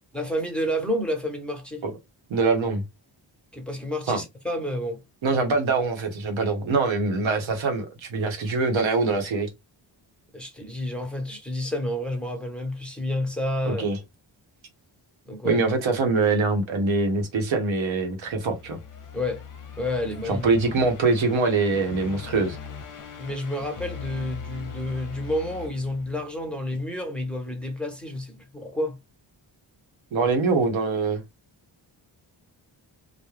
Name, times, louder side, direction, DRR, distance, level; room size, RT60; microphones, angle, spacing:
voice 1, 0.1-1.8 3.5-5.0 10.3-13.9 15.3-15.6 19.1-19.4 19.8-20.5 23.2-29.0, left 1 dB, ahead, 0.9 m, -30 dB
voice 2, 2.3-2.8 4.1-4.2 5.2-9.5 13.6-14.0 15.4-18.8 20.2-22.6 30.1-31.2, right 3 dB, 75° right, 0.9 m, -23 dB
sound 1, 18.3-26.6, left 6 dB, 40° left, 0.7 m, -41 dB
2.2 x 2.1 x 3.1 m
cardioid pair, 60°, 47 cm